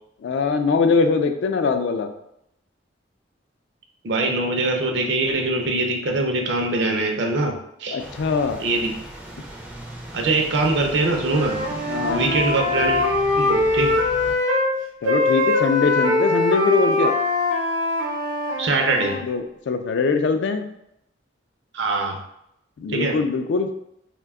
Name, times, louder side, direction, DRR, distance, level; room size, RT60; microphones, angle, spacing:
voice 1, 0.2-2.1 7.9-8.6 11.9-12.3 15.0-17.1 19.0-20.6 22.8-23.7, left 4 dB, 70° left, 7 dB, 0.3 m, -22 dB
voice 2, 4.0-8.0 8.6-8.9 10.1-11.6 12.1-13.1 13.4-14.0 18.6-19.2 21.7-22.2 22.9-23.2, right 2 dB, 65° right, 1 dB, 0.5 m, -23 dB
sound 1, 8.0-14.4, right 1 dB, 5° right, 0.3 m, -37 dB
Wind instrument woodwind instrument, 11.2-14.7 15.0-19.2, left 2 dB, 90° right, 0.8 m, -22 dB
2.6 x 2.2 x 3.5 m, 0.78 s
head